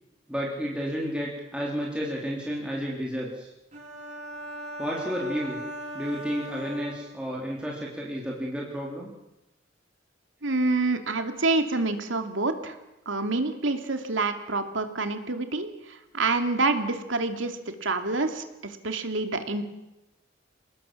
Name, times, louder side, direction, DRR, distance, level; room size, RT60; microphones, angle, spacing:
voice 1, 0.3-3.5 4.8-5.6 5.9-9.1, equal, 5° right, -3 dB, 3.4 m, -31 dB
sound 1, 3.7-7.6, equal, 35° right, 5.2 m, -39 dB
voice 2, 10.4-12.8 13.1-19.6, right 3 dB, 80° right, 6 dB, 2.8 m, -27 dB
28.0 x 19.5 x 7.5 m, 0.95 s
head